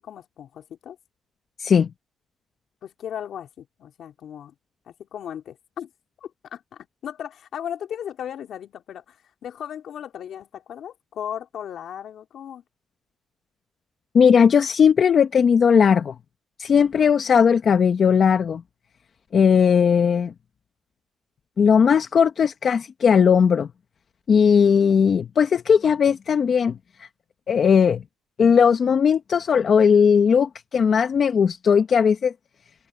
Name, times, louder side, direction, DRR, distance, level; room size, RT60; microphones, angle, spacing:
voice 1, 0.0-1.0 2.8-4.5 4.9-5.9 6.2-12.6 16.8-17.1, left 9 dB, 65° left, 3.6 m, -36 dB
voice 2, 1.6-1.9 14.1-16.1 16.6-18.6 19.3-20.3 21.6-23.7 24.3-27.1 27.5-28.0 28.4-32.3, left 7 dB, 50° left, 1.1 m, -18 dB
open air
cardioid pair, 90°, 0 cm